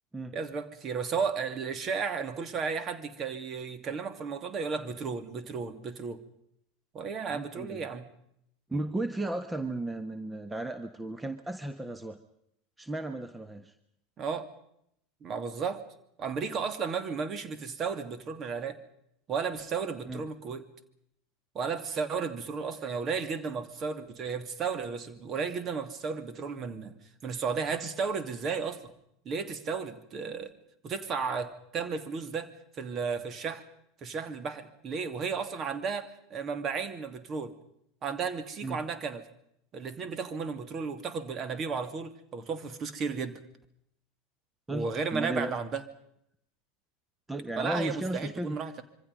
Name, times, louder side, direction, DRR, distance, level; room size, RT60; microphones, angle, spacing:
voice 1, 0.3-6.2 6.9-8.1 14.2-14.5 15.2-15.8 16.2-18.8 19.3-20.6 21.5-26.9 27.2-28.9 29.2-30.5 30.8-32.5 32.8-33.6 34.0-37.6 38.0-39.3 39.7-43.4 44.7-45.8 47.6-48.8, right 5 dB, 35° right, 11 dB, 2.6 m, -34 dB
voice 2, 7.3-7.8 8.7-12.2 12.8-13.7 20.1-20.2 38.6-38.8 44.7-45.5 47.3-48.6, right 1 dB, 10° right, 11 dB, 1.4 m, -35 dB
26.5 x 24.0 x 5.4 m, 0.75 s
figure-of-eight pair, 80°, 0 cm